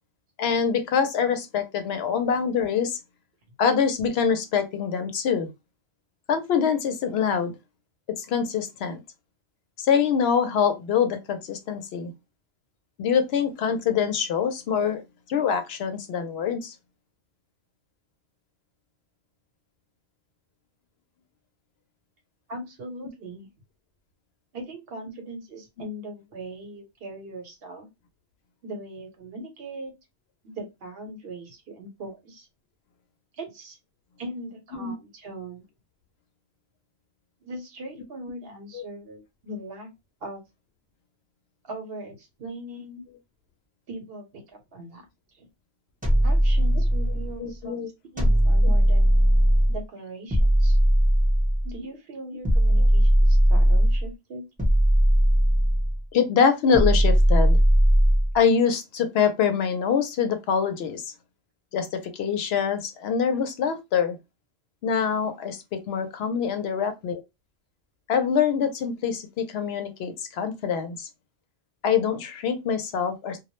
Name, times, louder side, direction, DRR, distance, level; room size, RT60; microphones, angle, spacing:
voice 1, 0.4-3.0 3.6-5.5 6.3-7.5 8.2-9.0 9.8-12.1 13.0-15.0 15.3-16.7 34.8-34.9 38.7-38.8 47.4-47.9 52.8-52.9 56.1-57.6 58.3-61.1 61.7-64.2 64.8-67.2 68.1-71.1 71.8-73.4, left 7 dB, 75° left, 0.8 m, -24 dB
voice 2, 22.5-23.5 24.5-27.9 28.6-29.9 30.4-32.5 33.4-33.8 34.2-35.6 37.4-39.9 40.2-40.4 41.6-43.0 43.9-44.4 44.7-45.0 45.3-45.5 46.2-47.8 48.1-49.1 49.7-50.8 51.6-54.4, right 1 dB, 70° right, 1.0 m, -39 dB
sound 1, 46.0-47.3 48.2-49.8 50.3-51.7 52.4-54.1 54.6-56.0 56.7-58.3, equal, 10° right, 0.7 m, -19 dB
2.2 x 2.0 x 2.9 m
omnidirectional pair, 1.1 m